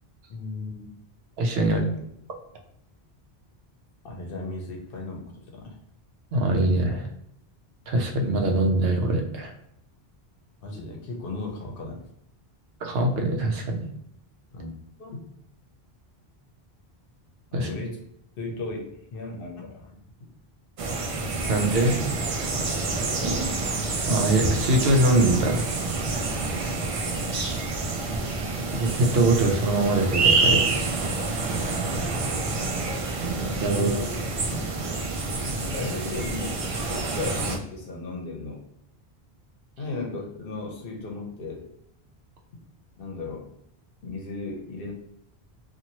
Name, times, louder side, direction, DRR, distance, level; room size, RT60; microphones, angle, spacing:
voice 1, 0.3-0.9 1.6-1.7 4.0-5.7 10.6-12.0 14.5-14.7 15.0-15.2 17.5-18.0 18.4-19.9 23.0-23.6 26.4-26.9 33.7-34.1 34.5-34.7 35.6-38.6 39.8-41.7 42.5-42.6 43.0-43.5 44.0-44.9, left 2 dB, 60° left, 0 dB, 0.9 m, -35 dB
voice 2, 1.4-1.9 6.3-7.1 7.9-9.5 12.8-13.9 17.5-17.7 21.5-22.1 24.1-25.7 28.7-30.9 33.6-33.9, right 2 dB, 75° right, 3 dB, 0.8 m, -23 dB
sound 1, 20.8-37.6, right 3 dB, 50° right, 0.4 m, -27 dB
2.9 x 2.5 x 2.7 m, 0.74 s
omnidirectional pair, 1.1 m